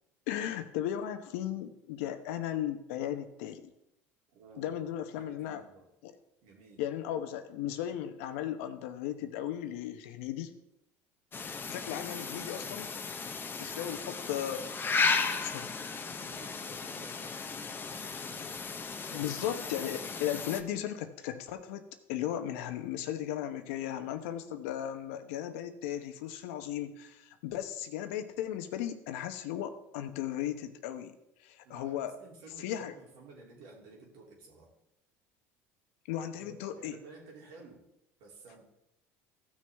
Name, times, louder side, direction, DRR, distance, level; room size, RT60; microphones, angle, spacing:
voice 1, 0.3-3.7 4.6-5.6 6.0-6.1 6.8-10.5 11.7-12.9 13.6-14.7 15.4-16.1 19.1-32.1 32.6-32.9 36.1-37.0, left 11 dB, 80° left, 9 dB, 1.0 m, -36 dB
voice 2, 4.3-4.8 5.1-5.9 6.4-6.8 16.1-18.6 19.0-19.6 31.6-34.7 36.4-37.8 38.2-38.6, right 3 dB, 75° right, -1 dB, 2.9 m, -54 dB
sound 1, 11.3-20.6, left 4 dB, 30° left, 0.9 m, -35 dB
15.0 x 6.5 x 3.5 m, 0.86 s
hypercardioid pair, 80°, 7 cm